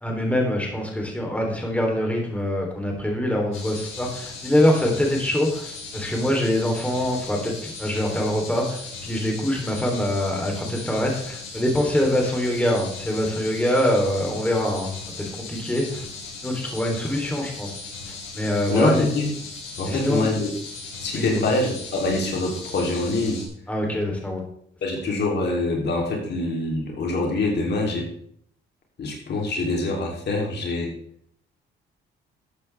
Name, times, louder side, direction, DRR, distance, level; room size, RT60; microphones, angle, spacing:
voice 1, 0.0-16.0 16.4-17.7 18.3-19.1 19.9-20.3 21.1-21.4 23.7-24.4, left 1 dB, 5° left, 0 dB, 3.3 m, -24 dB
sound 1, 3.5-23.5, left 4 dB, 90° left, 3.0 m, -38 dB
voice 2, 18.7-19.3 19.8-20.5 21.0-23.4 24.8-28.1 29.0-30.9, left 2 dB, 60° left, 0 dB, 3.1 m, -24 dB
13.0 x 8.6 x 3.4 m, 0.65 s
cardioid pair, 90°, 20 cm